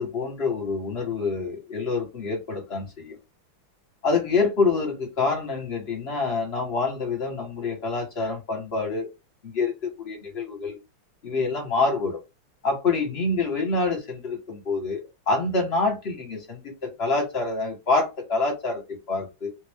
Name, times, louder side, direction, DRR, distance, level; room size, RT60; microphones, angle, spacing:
voice 1, 0.0-3.2 4.0-9.1 9.4-10.8 11.2-12.2 12.6-15.0 15.3-19.5, left 3 dB, 35° left, 1.3 m, -26 dB
3.4 x 2.6 x 3.5 m
omnidirectional pair, 2.4 m